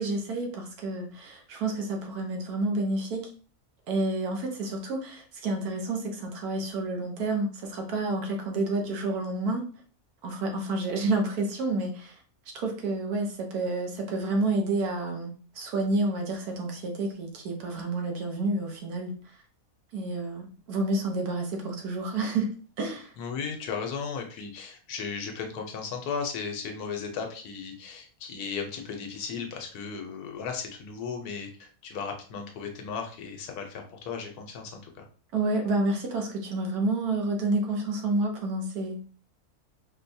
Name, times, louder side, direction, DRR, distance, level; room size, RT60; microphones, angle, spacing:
voice 1, 0.0-3.2 3.9-9.6 10.2-12.1 12.5-19.1 19.9-22.5 22.8-23.1 35.3-39.0, right 2 dB, 80° right, 1.3 m, -29 dB
voice 2, 23.2-35.0, left 5 dB, 85° left, 1.2 m, -36 dB
4.4 x 2.2 x 2.7 m
omnidirectional pair, 1.6 m